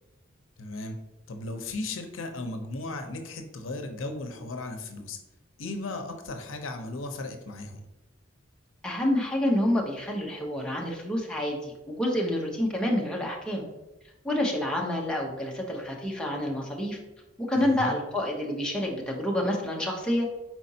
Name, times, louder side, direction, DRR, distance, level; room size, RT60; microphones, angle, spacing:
voice 1, 0.6-1.0 1.3-5.2 5.6-7.8 17.5-18.0, left 2 dB, 80° left, 5 dB, 0.6 m, -36 dB
voice 2, 8.8-13.6 14.2-17.0 17.4-20.3, left 1 dB, 5° left, -2 dB, 0.7 m, -28 dB
4.6 x 4.2 x 2.7 m, 1.0 s
head